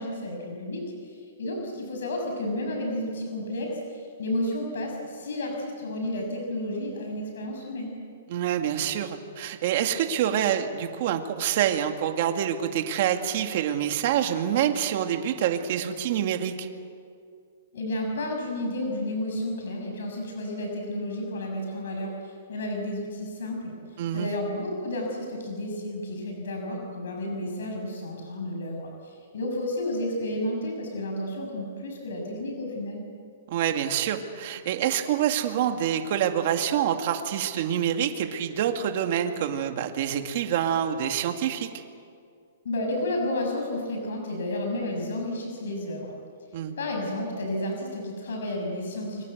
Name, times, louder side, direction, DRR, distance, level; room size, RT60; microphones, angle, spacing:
voice 1, 0.0-7.9 17.7-23.7 24.1-33.0 42.6-46.1 46.8-49.2, left 1 dB, 75° left, 2 dB, 6.6 m, -31 dB
voice 2, 8.3-16.7 24.0-24.3 33.5-41.7 46.5-46.7, right 10 dB, 45° right, 5 dB, 2.2 m, -26 dB
29.5 x 24.5 x 8.0 m, 2.3 s
hypercardioid pair, 170°, 0 cm